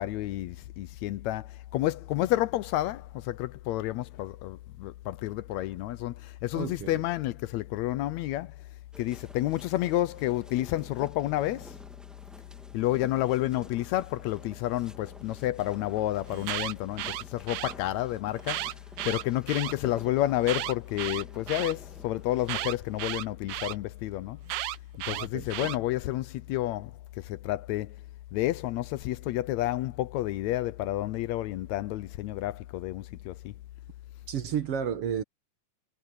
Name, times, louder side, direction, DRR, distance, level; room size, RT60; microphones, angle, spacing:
voice 1, 0.0-8.6 9.0-11.8 12.7-18.8 19.1-24.4 25.1-28.0 28.3-33.5, left 15 dB, 75° left, 1.9 m, -30 dB
voice 2, 6.5-7.0 25.1-25.7 34.3-35.2, right 8 dB, 60° right, 2.0 m, -32 dB
sound 1, 8.9-23.2, equal, ahead, 1.1 m, -51 dB
Alarm, 16.3-17.7 18.4-19.7 20.4-21.7 22.5-23.7 24.5-25.8, right 15 dB, 80° right, 2.0 m, -34 dB
omnidirectional pair, 3.4 m